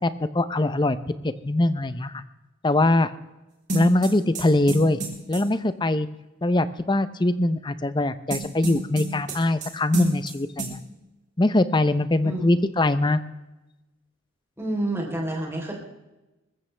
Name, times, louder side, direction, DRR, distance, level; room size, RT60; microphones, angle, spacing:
voice 1, 0.0-1.0 1.2-2.2 2.6-3.1 3.7-5.0 5.3-6.1 6.4-10.8 11.4-13.2, left 2 dB, 20° left, 13 dB, 0.6 m, -22 dB
sound 1, 3.7-5.4 8.3-9.7 9.9-10.3 10.6-10.7, right 2 dB, 35° right, 3.4 m, -29 dB
voice 2, 14.6-15.7, right 1 dB, 10° right, -1 dB, 3.6 m, -29 dB
21.0 x 14.5 x 3.3 m, 1.0 s
head